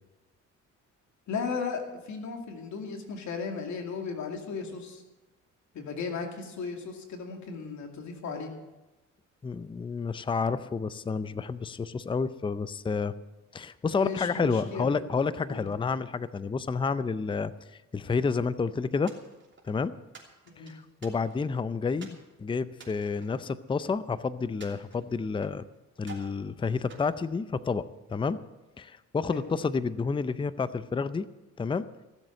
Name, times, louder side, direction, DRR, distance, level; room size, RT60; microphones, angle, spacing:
voice 1, 1.3-5.0 5.7-8.5 13.9-14.9 15.4-15.7 20.6-20.7 29.3-29.4, left 5 dB, 70° left, 3 dB, 2.5 m, -36 dB
voice 2, 9.4-13.1 13.5-17.5 17.9-19.1 19.7-19.9 20.6-25.6 26.0-27.8 28.1-28.4 28.8-31.3 31.6-31.9, left 5 dB, 15° left, 15 dB, 0.5 m, -30 dB
sound 1, 19.1-19.7 20.1-21.6 22.0-22.3 22.7-24.1 24.6-25.6 26.0-26.4 26.9-27.9, right 4 dB, 40° right, 3.0 m, -51 dB
16.0 x 7.6 x 7.7 m, 1.0 s
cardioid pair, 90°, 30 cm